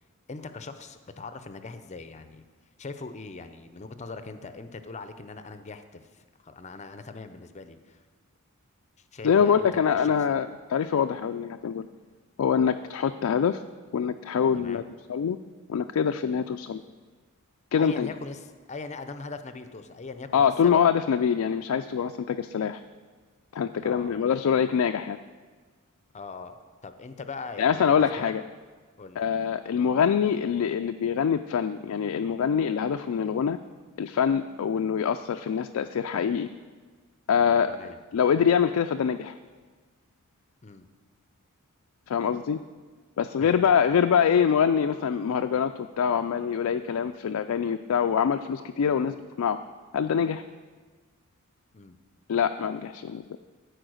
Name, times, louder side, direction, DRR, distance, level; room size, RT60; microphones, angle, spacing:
voice 1, 0.3-2.4 2.8-6.0 6.4-8.0 9.1-10.4 14.5-14.9 17.8-20.8 23.8-24.2 26.1-28.3 29.0-29.2 37.7-38.0 40.6-40.9 43.4-44.0 51.7-52.0, left 3 dB, 35° left, 10 dB, 0.6 m, -41 dB
voice 2, 9.2-11.9 12.4-13.6 13.9-14.8 15.1-15.4 15.7-16.8 17.7-18.1 20.3-22.8 23.5-25.2 27.6-28.4 29.2-33.6 34.0-36.5 37.3-39.3 42.1-42.6 43.2-49.6 49.9-50.4 52.3-53.4, left 7 dB, 80° left, 7 dB, 0.4 m, -24 dB
14.0 x 4.6 x 6.3 m, 1.5 s
head